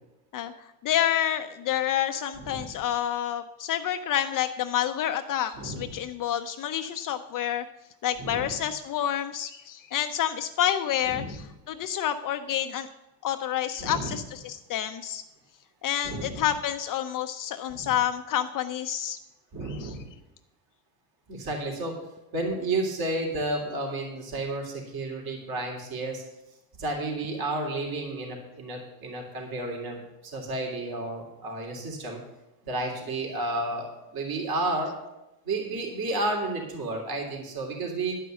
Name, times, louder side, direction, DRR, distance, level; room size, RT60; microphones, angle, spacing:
voice 1, 0.8-7.6 8.0-12.9 13.2-15.2 15.8-19.2 19.7-19.9, left 10 dB, 40° left, 8 dB, 0.6 m, -28 dB
voice 2, 2.4-2.7 5.5-6.0 8.2-8.6 11.1-11.4 13.8-14.2 16.0-16.4 17.7-17.9 19.5-20.1 21.3-22.0 22.3-26.2 26.8-32.2 32.6-35.0 35.4-38.2, right 2 dB, 45° right, 1 dB, 3.4 m, -32 dB
10.5 x 5.6 x 7.6 m, 0.95 s
supercardioid pair, 115°, 49 cm